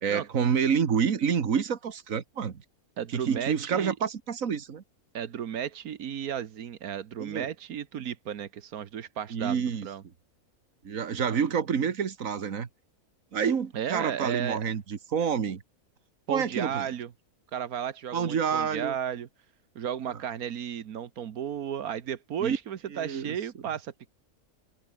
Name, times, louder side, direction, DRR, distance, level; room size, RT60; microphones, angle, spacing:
voice 1, 0.0-2.6 3.1-4.8 7.2-7.5 9.3-9.9 10.8-12.7 13.3-15.6 16.3-16.9 18.1-19.0 22.4-22.6 22.9-23.3, right 7 dB, 65° right, 1.9 m, -28 dB
voice 2, 3.0-3.9 5.1-10.0 13.7-14.6 16.3-17.1 17.5-19.3 19.7-24.1, right 9 dB, 90° right, 1.6 m, -34 dB
omnidirectional pair, 1.5 m